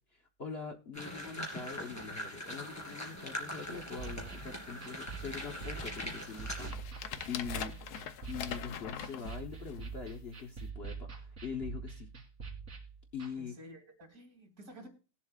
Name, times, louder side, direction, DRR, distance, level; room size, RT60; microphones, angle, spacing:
voice 1, 0.1-7.7 8.3-12.1 13.1-13.5, left 5 dB, 45° left, 3 dB, 1.2 m, -43 dB
sound 1, 0.9-6.7, equal, 10° left, 3.1 m, -42 dB
sound 2, 2.5-2.7 3.2-3.3 3.5-4.0 4.6-4.7 5.2-10.0 10.6-10.7, left 8 dB, 75° left, 1.3 m, -44 dB
sound 3, 3.7-13.3, right 5 dB, 45° right, 2.8 m, -45 dB
voice 2, 13.4-14.9, right 1 dB, 65° right, 2 dB, 3.2 m, -52 dB
20.0 x 7.4 x 2.4 m, 0.34 s
omnidirectional pair, 1.7 m